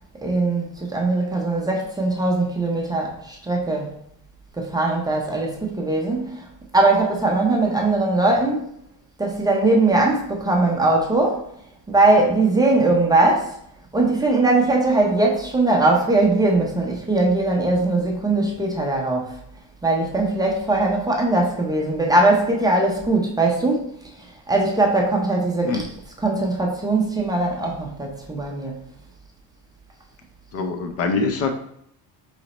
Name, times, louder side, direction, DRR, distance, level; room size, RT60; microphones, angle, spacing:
voice 1, 0.2-3.9 4.6-8.7 9.2-11.4 11.9-13.6 13.9-19.4 19.8-23.9 24.2-25.8 26.2-28.8, right 2 dB, 10° right, -1 dB, 0.5 m, -20 dB
voice 2, 30.5-31.5, left 4 dB, 45° left, 6 dB, 0.5 m, -23 dB
3.9 x 3.2 x 4.0 m, 0.70 s
cardioid pair, 155°, 35 cm